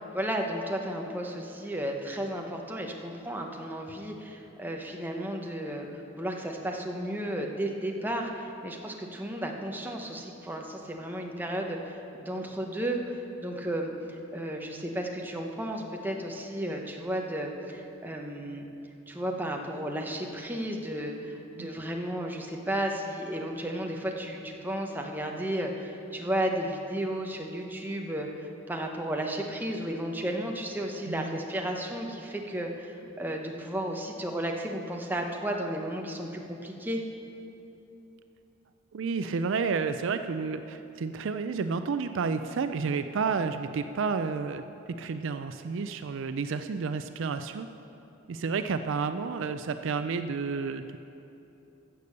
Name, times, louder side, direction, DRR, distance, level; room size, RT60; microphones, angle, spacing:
voice 1, 0.0-18.7 19.1-37.0, right 1 dB, 10° right, 1 dB, 0.9 m, -33 dB
voice 2, 31.1-31.4 38.9-44.6 45.0-47.7 48.3-51.0, right 5 dB, 60° right, 9 dB, 0.4 m, -31 dB
15.0 x 6.8 x 6.6 m, 2.9 s
head